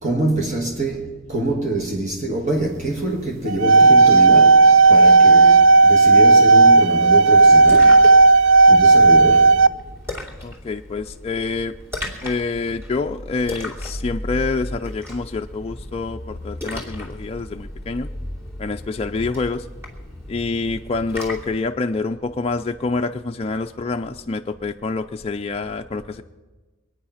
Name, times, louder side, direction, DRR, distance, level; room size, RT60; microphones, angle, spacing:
voice 1, 0.0-8.0 8.7-9.6, right 2 dB, 35° right, 1.5 m, -25 dB
sound 1, 3.5-9.7, right 3 dB, 70° right, 0.5 m, -11 dB
Splash splatter, 7.3-21.6, left 1 dB, 15° right, 2.6 m, -35 dB
voice 2, 10.4-11.7 12.2-18.1 18.6-19.7 20.3-26.2, left 3 dB, 30° left, 0.4 m, -27 dB
23.0 x 9.5 x 5.7 m
head